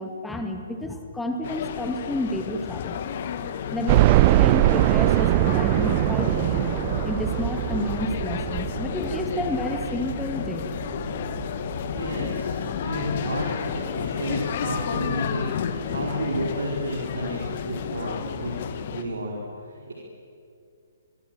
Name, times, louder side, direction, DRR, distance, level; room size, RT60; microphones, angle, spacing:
voice 1, 0.0-3.0 3.7-6.6 7.0-10.7, left 1 dB, 5° left, 4 dB, 1.9 m, -30 dB
sound 1, 1.4-19.0, left 8 dB, 40° left, 1.5 m, -31 dB
sound 2, 3.9-12.8 13.3-13.4 13.7-13.8 15.0-15.1 15.4-15.5, right 19 dB, 30° right, 0.5 m, -23 dB
voice 2, 11.7-15.5 15.8-18.6 18.9-19.3 19.6-19.9, right 1 dB, 65° right, -2 dB, 4.6 m, -31 dB
27.0 x 22.5 x 7.7 m, 2.5 s
figure-of-eight pair, 125°, 0 cm